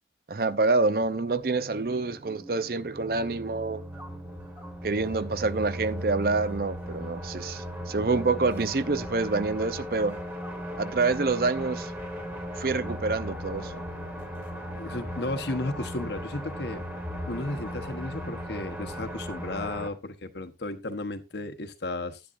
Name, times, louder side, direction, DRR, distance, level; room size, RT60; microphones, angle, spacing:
voice 1, 0.3-3.8 4.8-10.2 10.8-11.9 12.6-13.8, right 3 dB, 55° right, 0.6 m, -27 dB
sound 1, 0.9-19.9, equal, 10° right, 1.6 m, -37 dB
voice 2, 14.7-16.8 17.3-22.2, left 2 dB, 75° left, 1.1 m, -34 dB
11.5 x 10.5 x 2.6 m
head